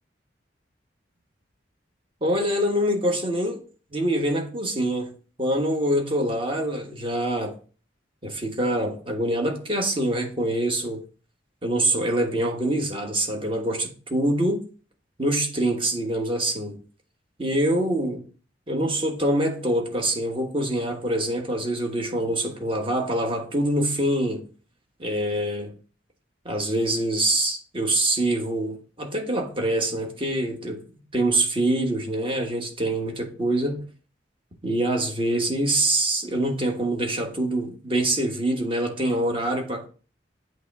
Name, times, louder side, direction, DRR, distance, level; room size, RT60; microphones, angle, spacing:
voice 1, 2.2-3.6 3.9-5.1 5.4-7.5 8.2-11.0 11.6-14.6 15.2-16.8 17.4-18.2 18.7-24.4 25.0-25.7 26.4-30.8 31.1-33.9 34.6-39.9, right 1 dB, 30° right, 1.3 m, -25 dB
7.9 x 3.1 x 4.7 m
head